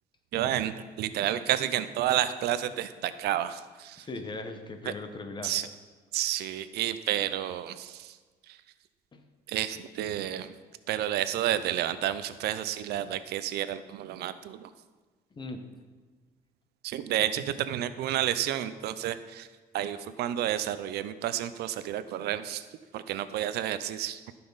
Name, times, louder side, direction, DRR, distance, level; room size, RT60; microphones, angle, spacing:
voice 1, 0.3-4.0 5.4-5.6 6.1-7.9 9.5-10.5 10.9-14.7 16.8-19.5 19.7-22.6 22.9-24.2, right 12 dB, 75° right, 13 dB, 0.5 m, -30 dB
voice 2, 4.0-5.6 9.1-9.2 15.4-15.6 19.8-19.9, left 3 dB, 25° left, 6 dB, 1.1 m, -39 dB
14.5 x 5.8 x 4.0 m, 1.3 s
cardioid pair, 110°, 17 cm